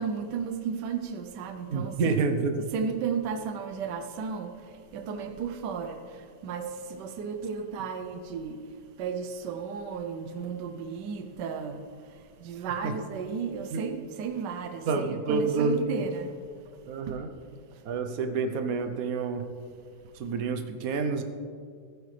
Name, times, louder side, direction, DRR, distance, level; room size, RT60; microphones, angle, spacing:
voice 1, 0.0-2.2 2.6-4.5 4.9-8.6 9.0-11.8 12.1-16.3 17.1-17.2, right 6 dB, 75° right, 7 dB, 1.3 m, -34 dB
voice 2, 1.7-2.6 12.8-12.9 13.7-13.8 14.9-16.0 16.9-17.3 17.8-19.5 20.1-21.2, right 4 dB, 60° right, 7 dB, 1.2 m, -28 dB
15.0 x 9.9 x 3.3 m, 2.1 s
omnidirectional pair, 1.9 m